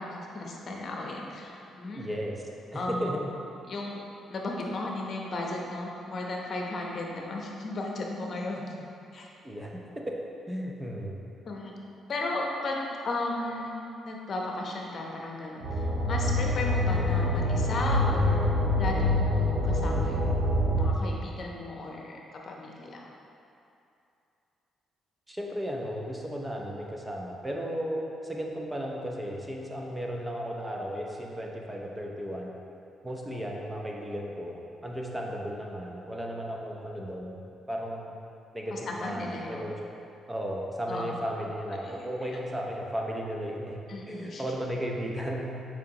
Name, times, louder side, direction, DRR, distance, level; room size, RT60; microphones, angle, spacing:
voice 1, 0.0-2.2 2.7-3.2 3.7-4.0 4.3-8.8 9.1-9.3 11.4-11.7 12.1-18.5 18.8-20.3 20.8-23.1 38.7-39.7 40.9-41.3 41.7-42.4 43.9-44.4, left 2 dB, 50° left, -1 dB, 1.0 m, -35 dB
voice 2, 2.0-2.4 2.7-3.2 9.4-9.8 10.1-10.2 10.5-11.2 25.3-32.5 33.0-37.4 37.7-38.2 38.5-39.8 40.3-43.8 44.1-45.5, equal, 15° right, -1 dB, 0.8 m, -35 dB
sound 1, 15.6-20.8, left 1 dB, 65° right, 1.2 m, -25 dB
7.1 x 5.0 x 3.0 m, 2.7 s
cardioid pair, 90°, 0 cm